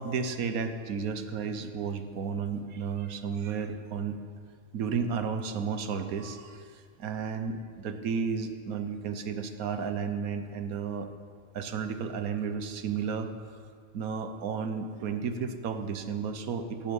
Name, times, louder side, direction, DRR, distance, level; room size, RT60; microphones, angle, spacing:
voice 1, 0.0-4.2 4.7-6.6 7.0-11.1 11.5-13.3 13.9-16.9, right 6 dB, 85° right, 8 dB, 1.4 m, -32 dB
16.0 x 12.5 x 5.4 m, 2.1 s
omnidirectional pair, 1.5 m